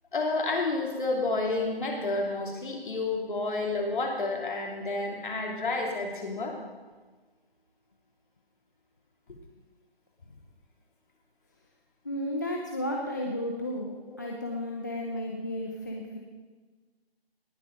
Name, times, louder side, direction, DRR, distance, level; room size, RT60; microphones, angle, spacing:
voice 1, 0.1-6.5 14.1-14.2, left 3 dB, 55° left, 1 dB, 2.9 m, -30 dB
voice 2, 12.0-16.2, left 1 dB, 20° left, -1 dB, 0.6 m, -33 dB
18.5 x 8.2 x 5.2 m, 1.3 s
figure-of-eight pair, 165°, 31 cm